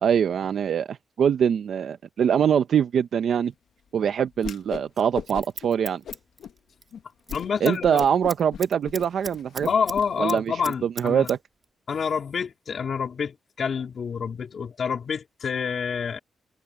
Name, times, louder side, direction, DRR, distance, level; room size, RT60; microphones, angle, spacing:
voice 1, 0.0-3.5 3.9-6.0 7.6-9.7 10.2-11.4, right 8 dB, 65° right, 0.7 m, -23 dB
Whoosh swoosh swish, 4.4-4.9 5.1-5.7 6.0-6.5 6.9-7.0 7.3-7.5 7.8-10.1, left 8 dB, 70° left, 1.3 m, -37 dB
Scissors, 4.9-6.9 7.2-7.4 7.7-10.0 10.3-11.4 11.6-11.7, right 4 dB, 30° right, 1.8 m, -38 dB
voice 2, 7.3-8.0 9.6-11.3 11.9-16.2, left 6 dB, 50° left, 3.5 m, -28 dB
wide cardioid pair, 140°, 0 cm